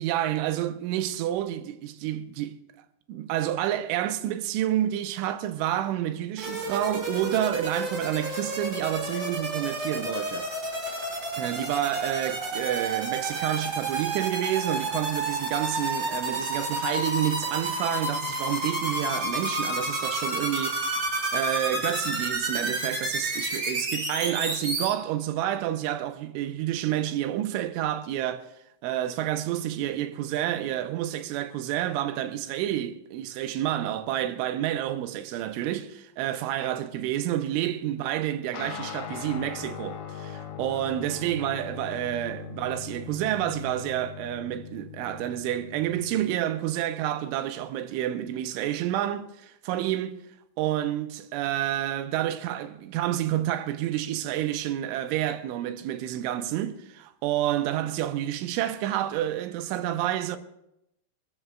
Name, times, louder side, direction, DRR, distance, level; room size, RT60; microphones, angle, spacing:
voice 1, 0.0-2.6 3.1-10.5 11.4-28.5 28.8-50.2 50.6-60.4, right 12 dB, 85° right, 3.1 m, -29 dB
sound 1, 6.4-24.9, right 2 dB, 25° right, 3.6 m, -30 dB
sound 2, 38.5-46.3, left 7 dB, 90° left, 1.9 m, -40 dB
26.0 x 14.0 x 2.3 m
omnidirectional pair, 5.6 m